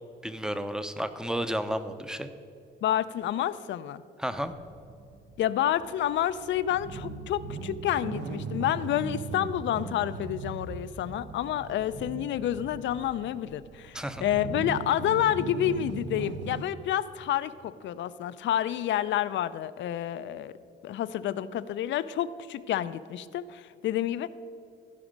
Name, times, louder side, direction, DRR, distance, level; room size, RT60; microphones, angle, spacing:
voice 1, 0.2-2.3 4.2-4.5 13.9-14.2, equal, 5° right, 10 dB, 0.6 m, -32 dB
voice 2, 2.8-4.0 5.4-20.5 20.8-24.3, left 11 dB, 70° left, 14 dB, 0.4 m, -29 dB
sound 1, 4.5-16.6, right 4 dB, 65° right, 0.7 m, -39 dB
15.0 x 5.1 x 5.2 m, 2.5 s
cardioid pair, 90°, 20 cm